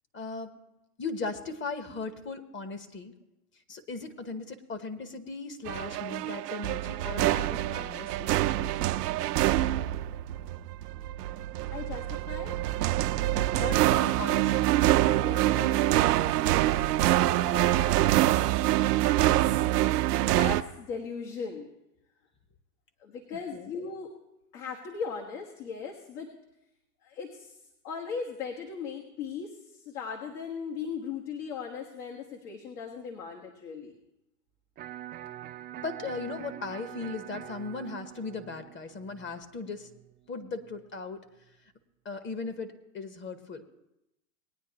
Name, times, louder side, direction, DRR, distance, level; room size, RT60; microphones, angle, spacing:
voice 1, 0.1-0.5 1.0-3.1 3.7-9.0 13.5-14.7 16.6-16.7 23.3-23.7 35.8-39.9 40.3-41.2 42.0-43.7, left 3 dB, 25° left, 10 dB, 1.0 m, -38 dB
sound 1, 5.7-20.6, right 15 dB, 85° right, 0.6 m, -25 dB
voice 2, 11.7-12.6 15.0-16.4 17.3-18.2 20.3-21.7 23.0-24.1 24.5-26.3 27.0-27.6 27.8-34.0, left 6 dB, 70° left, 1 dB, 1.5 m, -38 dB
Electric guitar, 34.8-40.8, right 12 dB, 25° right, 0.4 m, -45 dB
19.5 x 9.5 x 2.9 m, 0.88 s
hypercardioid pair, 105°, 46 cm